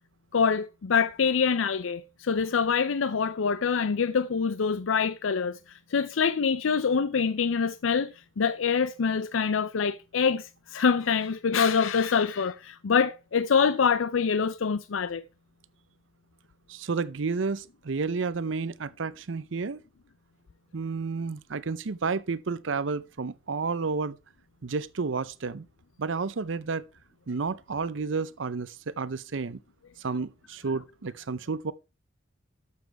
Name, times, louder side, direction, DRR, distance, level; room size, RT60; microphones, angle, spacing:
voice 1, 0.3-15.2, left 6 dB, 90° left, 0.5 m, -25 dB
voice 2, 16.7-19.8 20.7-24.2 24.6-25.6 26.0-26.8 27.3-29.6 30.0-31.7, right 4 dB, 75° right, 0.6 m, -31 dB
12.5 x 7.1 x 4.6 m
head